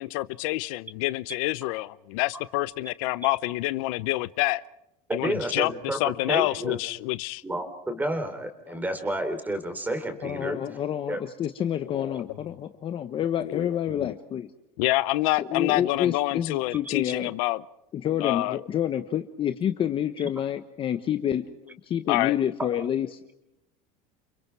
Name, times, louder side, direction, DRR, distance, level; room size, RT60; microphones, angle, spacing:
voice 1, 0.0-4.6 5.1-7.4 8.7-8.8 11.9-12.3 13.4-13.7 14.0-14.1 14.8-17.6 18.2-18.6 22.1-22.4, left 19 dB, 70° left, 16 dB, 0.8 m, -27 dB
voice 2, 5.1-6.0 6.3-6.8 7.4-10.6 11.1-11.2 22.6-22.7, right 1 dB, 10° right, 7 dB, 3.9 m, -30 dB
voice 3, 10.2-14.5 15.4-17.3 17.9-21.4 21.8-23.3, left 10 dB, 30° left, 9 dB, 1.1 m, -28 dB
30.0 x 27.0 x 4.7 m, 0.85 s
cardioid pair, 155°, 19 cm